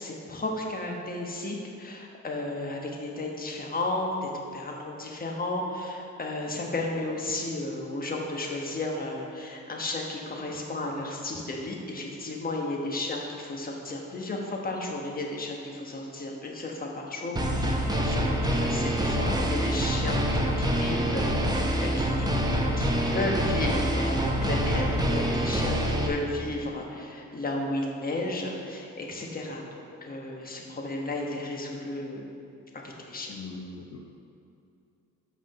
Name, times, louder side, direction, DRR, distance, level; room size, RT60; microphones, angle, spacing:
voice 1, 0.0-22.4 22.8-29.6 30.0-32.3 32.7-33.3, left 2 dB, 30° left, 0 dB, 1.3 m, -33 dB
sound 1, 17.4-26.1, equal, 15° right, 0.9 m, -26 dB
voice 2, 33.3-34.0, left 3 dB, 50° left, -1 dB, 0.8 m, -40 dB
5.8 x 5.0 x 6.7 m, 2.6 s
cardioid pair, 90°, 30 cm